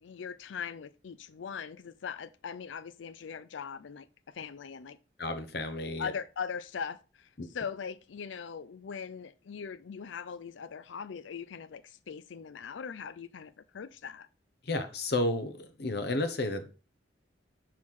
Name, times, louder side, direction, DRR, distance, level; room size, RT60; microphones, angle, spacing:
voice 1, 0.0-5.0 6.0-7.3 7.5-14.3, left 6 dB, 90° left, 0.4 m, -40 dB
voice 2, 5.2-6.1 7.4-7.5 14.6-16.7, left 2 dB, 60° left, 0.9 m, -32 dB
6.3 x 4.6 x 3.7 m
head